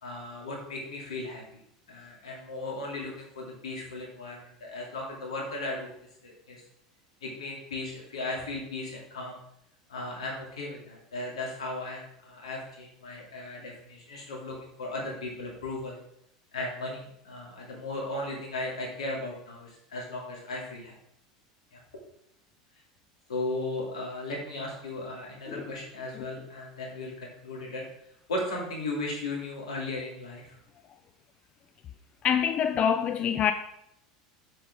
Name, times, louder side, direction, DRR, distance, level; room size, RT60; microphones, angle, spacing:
voice 1, 0.0-1.6 1.9-5.9 6.2-6.6 7.2-9.4 9.9-16.0 16.5-20.9 21.7-21.8 23.3-27.9 28.3-30.6, left 2 dB, 80° left, -2 dB, 2.9 m, -36 dB
voice 2, 32.2-33.5, left 8 dB, 35° left, 9 dB, 0.5 m, -25 dB
7.6 x 6.7 x 3.7 m, 0.74 s
hypercardioid pair, 80°, 3 cm